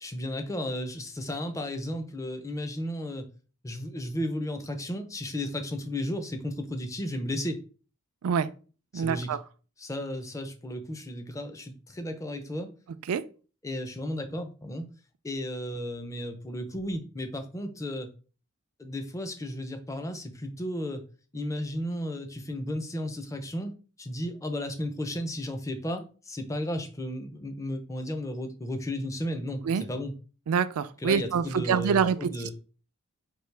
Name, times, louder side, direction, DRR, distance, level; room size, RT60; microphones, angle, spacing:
voice 1, 0.0-3.3 3.6-7.6 8.9-9.3 9.8-12.7 13.6-14.9 15.2-18.1 18.8-21.0 21.3-30.1 31.0-32.5, left 1 dB, 15° left, 0.5 m, -34 dB
voice 2, 8.9-9.4 13.1-13.2 29.6-29.8 30.5-32.5, right 6 dB, 80° right, 0.4 m, -26 dB
4.6 x 2.8 x 3.2 m
head